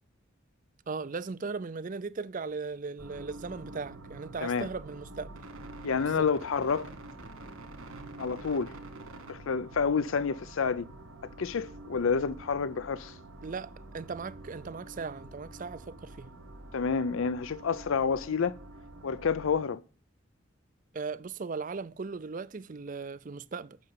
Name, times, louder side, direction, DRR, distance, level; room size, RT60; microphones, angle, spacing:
voice 1, 0.9-5.3 6.2-6.3 13.4-16.3 20.9-23.8, right 4 dB, 40° right, 0.4 m, -38 dB
sound 1, 3.0-19.7, right 2 dB, 80° right, 2.6 m, -47 dB
voice 2, 5.8-6.9 8.2-8.7 9.3-10.9 11.4-13.2 16.7-18.6 19.0-19.8, left 5 dB, 70° left, 0.5 m, -29 dB
9.6 x 6.6 x 7.5 m
head